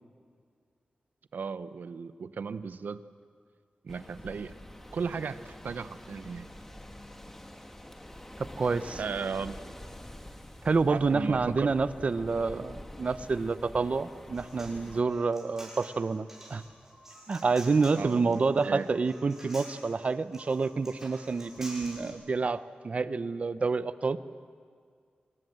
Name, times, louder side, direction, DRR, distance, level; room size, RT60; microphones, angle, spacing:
voice 1, 1.3-3.0 3.8-4.5 4.9-6.5 8.9-9.6 10.9-11.7 18.0-18.9, right 5 dB, 75° right, 12 dB, 0.8 m, -36 dB
sound 1, 3.9-15.0, left 1 dB, 10° left, 1.5 m, -46 dB
voice 2, 8.6-9.0 10.6-16.6 17.3-24.2, right 4 dB, 45° right, 13 dB, 0.7 m, -28 dB
Human voice, 14.1-22.1, right 1 dB, 15° right, 6.9 m, -48 dB
25.5 x 19.0 x 7.7 m, 2.1 s
wide cardioid pair, 155°, 3 cm